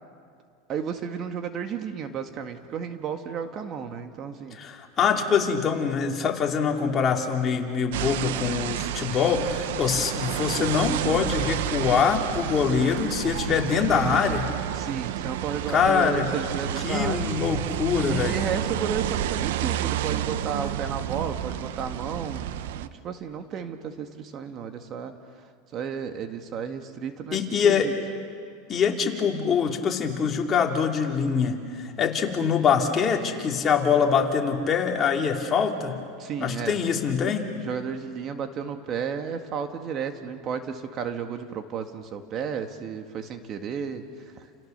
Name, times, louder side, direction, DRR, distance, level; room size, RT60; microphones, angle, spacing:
voice 1, 0.7-4.6 14.7-17.3 18.0-25.1 25.7-27.9 36.2-36.8 37.6-44.0 44.4-44.5, right 7 dB, 35° right, 6 dB, 1.8 m, -33 dB
voice 2, 4.5-14.5 15.7-16.3 16.8-18.3 27.3-27.9 28.7-36.0 36.4-37.5, left 6 dB, 30° left, 1 dB, 3.1 m, -24 dB
sound 1, 7.9-22.9, right 11 dB, 80° right, 0.9 m, -30 dB
30.0 x 29.5 x 6.8 m, 2.3 s
supercardioid pair, 135°, 0 cm